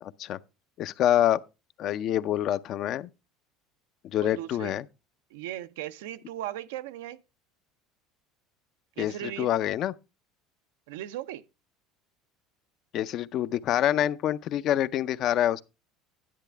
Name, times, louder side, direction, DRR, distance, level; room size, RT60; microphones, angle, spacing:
voice 1, 0.0-0.4 0.8-1.4 1.8-3.1 4.0-4.8 9.0-9.9 12.9-15.6, left 11 dB, 55° left, 0.5 m, -26 dB
voice 2, 4.2-4.7 5.3-7.2 9.0-9.5 10.9-11.4, right 13 dB, 85° right, 0.5 m, -37 dB
10.5 x 8.1 x 3.3 m
supercardioid pair, 95°, 0 cm